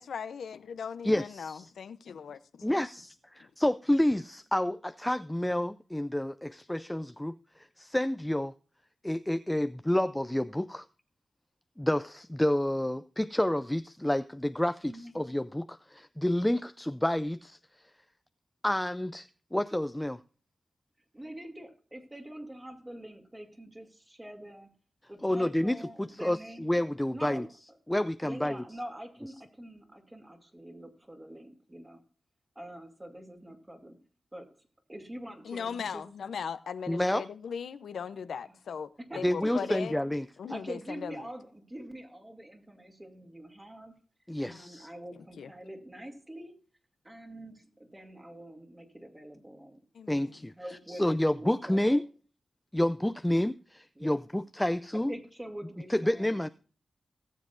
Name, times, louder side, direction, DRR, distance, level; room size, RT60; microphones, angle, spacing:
voice 1, 0.0-2.4 35.4-38.9 39.1-40.0 40.4-41.3 44.4-44.6 45.4-45.5 49.9-50.4, left 6 dB, 90° left, 0.6 m, -38 dB
voice 2, 1.0-1.7 2.6-8.5 9.0-10.9 11.8-17.6 18.6-20.2 25.2-27.5 27.9-28.6 36.9-37.2 39.2-40.3 44.3-44.9 50.1-50.5 51.0-52.0 52.7-55.1 55.9-56.5, left 1 dB, 10° left, 0.4 m, -29 dB
voice 3, 21.1-24.7 25.1-26.7 27.1-27.5 28.2-32.0 32.5-34.1 34.3-36.0 38.4-38.6 39.0-40.1 40.5-44.0 44.5-46.6 47.0-49.8 50.1-52.0 54.0-54.3 55.1-56.5, right 1 dB, 20° right, 2.5 m, -45 dB
18.5 x 7.4 x 2.5 m
cardioid pair, 60°, 0 cm